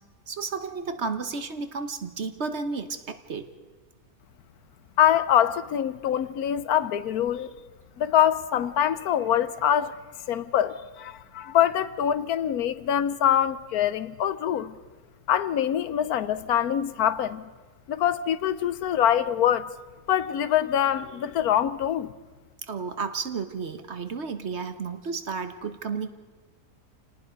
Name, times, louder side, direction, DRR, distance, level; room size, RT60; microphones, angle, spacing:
voice 1, 0.3-3.5 22.7-26.1, right 5 dB, 50° right, 1.3 m, -32 dB
voice 2, 5.0-7.5 8.0-10.0 10.3-14.8 15.3-17.5 17.9-19.7 20.1-22.1, left 10 dB, 85° left, 1.3 m, -24 dB
28.0 x 18.5 x 5.1 m
omnidirectional pair, 1.5 m